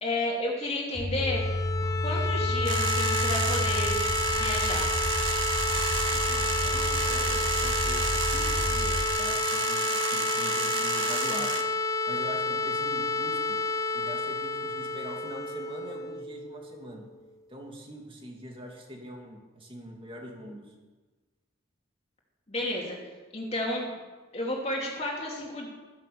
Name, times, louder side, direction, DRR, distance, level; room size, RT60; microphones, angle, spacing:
voice 1, 0.0-1.4 2.0-4.0 4.3-4.9 22.5-23.0 23.3-24.0 24.3-25.7, left 1 dB, 30° left, -2 dB, 2.7 m, -31 dB
sound 1, 0.9-9.0, left 1 dB, 5° right, 1.6 m, -31 dB
sound 2, 1.2-17.0, left 3 dB, 15° left, 0.6 m, -30 dB
sound 3, 2.7-11.6, right 6 dB, 75° right, 1.6 m, -32 dB
voice 2, 6.1-11.6 12.1-13.6 13.9-17.0 17.5-20.7, equal, 25° right, 1 dB, 2.6 m, -43 dB
14.5 x 11.0 x 7.0 m, 1.3 s
head